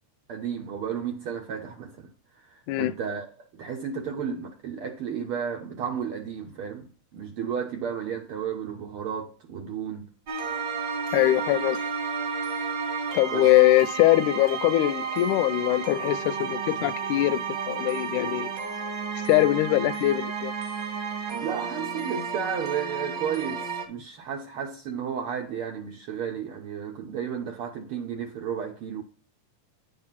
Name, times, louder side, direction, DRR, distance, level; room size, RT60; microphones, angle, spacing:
voice 1, 0.3-2.1 2.4-3.3 3.5-10.1 13.3-13.5 21.4-29.0, right 7 dB, 75° right, 1.2 m, -33 dB
sound 1, 10.3-23.9, right 6 dB, 45° right, 1.8 m, -32 dB
voice 2, 11.1-11.8 13.1-18.5 19.3-20.5, left 16 dB, 80° left, 2.0 m, -22 dB
9.4 x 4.8 x 5.6 m
omnidirectional pair, 3.5 m